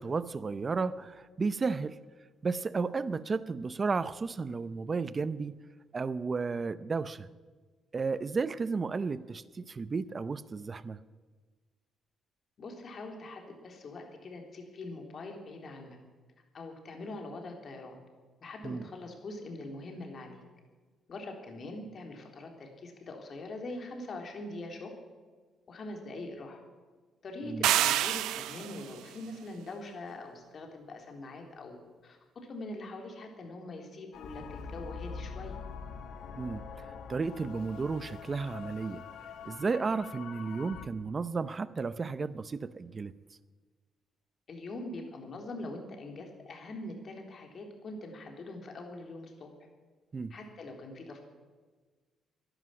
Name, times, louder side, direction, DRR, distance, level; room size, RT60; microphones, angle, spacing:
voice 1, 0.0-2.0 2.4-5.5 5.9-7.3 7.9-11.0 18.6-18.8 27.4-27.7 36.4-39.0 39.4-43.1 50.1-50.3, right 4 dB, 35° right, 0.6 m, -33 dB
voice 2, 12.6-16.0 16.5-18.0 18.4-20.4 21.1-24.9 25.7-26.6 27.2-31.8 32.0-35.5 44.5-49.5 50.3-51.2, left 2 dB, 50° left, 3.6 m, -43 dB
sound 1, 27.6-28.9, right 13 dB, 90° right, 0.6 m, -27 dB
sound 2, 34.1-40.9, left 6 dB, 80° left, 1.3 m, -44 dB
13.0 x 11.0 x 9.9 m
cardioid pair, 90°, 0 cm